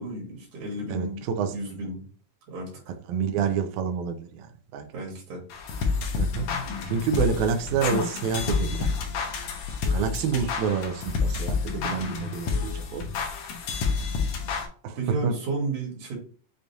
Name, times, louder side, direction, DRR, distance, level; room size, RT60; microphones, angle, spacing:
voice 1, 0.0-1.2 1.5-2.0 2.5-2.9 4.9-5.4 15.0-16.1, right 2 dB, 65° right, 2.5 m, -32 dB
voice 2, 0.9-1.5 3.1-4.5 4.7-4.9 6.1-6.5 6.9-8.9 9.9-13.0 14.8-15.0 15.2-15.4, right 6 dB, 85° right, 1.6 m, -28 dB
sound 1, 5.5-14.7, left 5 dB, 75° left, 1.6 m, -29 dB
6.4 x 2.3 x 2.6 m
omnidirectional pair, 4.0 m